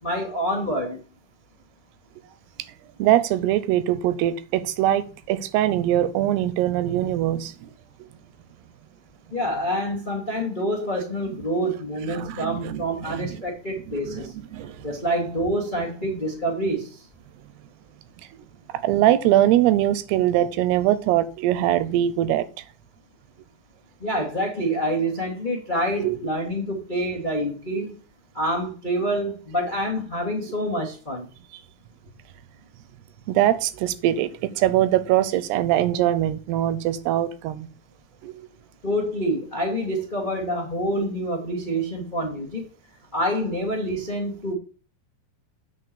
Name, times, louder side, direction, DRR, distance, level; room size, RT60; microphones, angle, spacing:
voice 1, 0.0-1.0 9.3-14.3 14.8-17.1 24.0-27.9 28.3-31.3 38.8-42.6 43.1-44.5, equal, 70° left, 0.4 m, -27 dB
voice 2, 3.0-7.7 12.1-13.3 14.1-14.2 14.5-14.8 18.8-22.4 26.0-26.2 33.3-34.3 34.6-37.7 38.2-38.3, right 13 dB, 85° right, 2.8 m, -22 dB
8.6 x 4.5 x 6.8 m
omnidirectional pair, 4.6 m